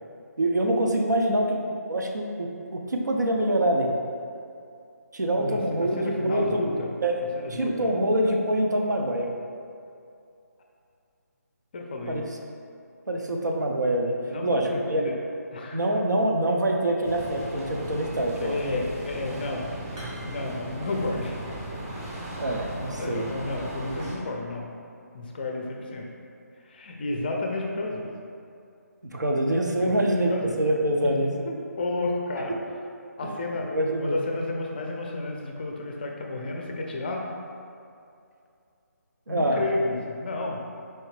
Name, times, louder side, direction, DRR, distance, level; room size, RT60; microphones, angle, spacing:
voice 1, 0.4-1.6 1.9-3.9 5.1-6.6 7.0-9.3 12.1-12.2 13.1-14.1 14.4-15.0 15.7-18.6 22.4-23.3 29.1-30.3 30.6-31.3 33.7-34.2 39.3-39.6, right 1 dB, 85° right, 1 dB, 0.5 m, -25 dB
voice 2, 5.3-7.0 7.4-7.9 11.7-12.2 14.2-15.2 15.5-15.8 18.4-19.8 20.2-21.4 23.0-24.7 25.1-26.1 26.6-28.1 29.8-30.6 31.0-31.1 31.4-32.6 33.2-33.7 34.0-37.3 39.3-40.6, left 2 dB, 35° left, 0 dB, 0.4 m, -32 dB
sound 1, 17.0-24.2, right 1 dB, 15° right, 0.6 m, -37 dB
4.5 x 2.7 x 3.1 m, 2.5 s
figure-of-eight pair, 150°, 9 cm